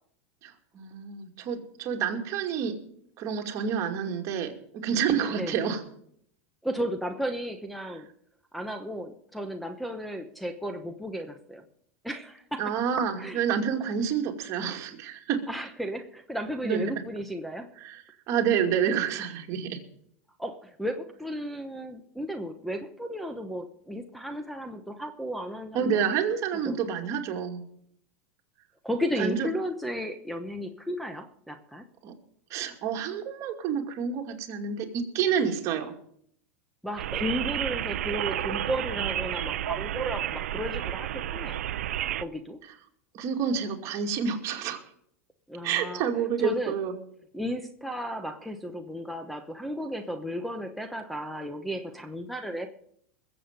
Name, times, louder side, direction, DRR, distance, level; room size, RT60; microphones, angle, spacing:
voice 1, 0.4-2.7 3.2-5.8 12.6-15.5 16.6-16.8 17.8-19.8 25.7-27.6 29.2-29.5 32.0-32.1 32.5-35.9 43.1-44.8 45.6-46.9, right 7 dB, 45° right, 3 dB, 2.4 m, -28 dB
voice 2, 5.3-5.6 6.6-8.1 8.5-11.6 12.0-12.7 13.2-13.4 15.5-17.7 20.4-26.0 26.6-26.8 28.8-31.8 36.8-41.6 42.2-42.6 45.5-46.0 46.4-46.7 47.3-52.7, equal, ahead, 3 dB, 1.0 m, -34 dB
sound 1, 37.0-42.2, right 12 dB, 90° right, 0.5 m, -31 dB
21.5 x 7.8 x 5.3 m, 0.67 s
supercardioid pair, 120°, 7 cm